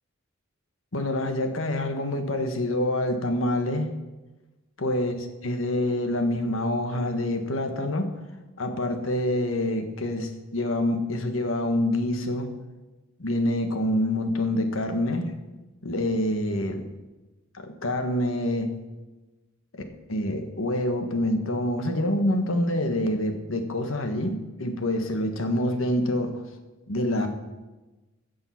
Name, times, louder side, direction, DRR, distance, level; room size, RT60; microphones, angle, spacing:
voice 1, 0.9-3.9 4.8-8.1 8.6-12.5 13.2-15.3 15.8-16.9 17.5-18.8 19.7-19.8 20.1-26.4 26.9-27.3, left 1 dB, 85° left, 6 dB, 1.4 m, -26 dB
15.0 x 5.5 x 5.8 m, 1.1 s
head